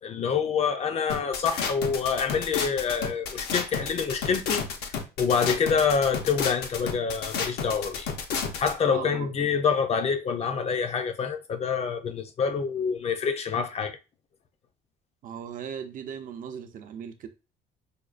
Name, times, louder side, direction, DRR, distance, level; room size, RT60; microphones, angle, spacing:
voice 1, 0.0-4.6 5.2-8.1 8.6-14.0, left 6 dB, 40° left, 0.5 m, -26 dB
sound 1, 1.1-8.7, left 6 dB, 75° left, 0.7 m, -31 dB
voice 2, 8.9-9.3 15.2-17.3, right 8 dB, 55° right, 0.5 m, -38 dB
5.0 x 2.2 x 2.4 m
cardioid pair, 110°, 17 cm